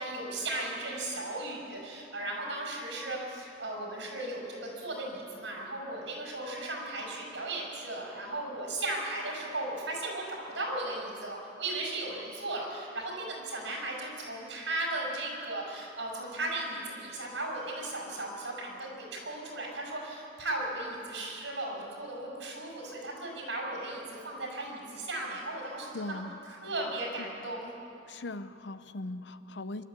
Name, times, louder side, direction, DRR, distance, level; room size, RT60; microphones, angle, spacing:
voice 1, 0.0-26.2 26.6-27.7, right 2 dB, 90° right, -1 dB, 6.0 m, -36 dB
voice 2, 25.9-26.4 28.1-29.8, left 2 dB, 75° left, 12 dB, 0.7 m, -39 dB
25.5 x 12.5 x 8.2 m, 2.7 s
head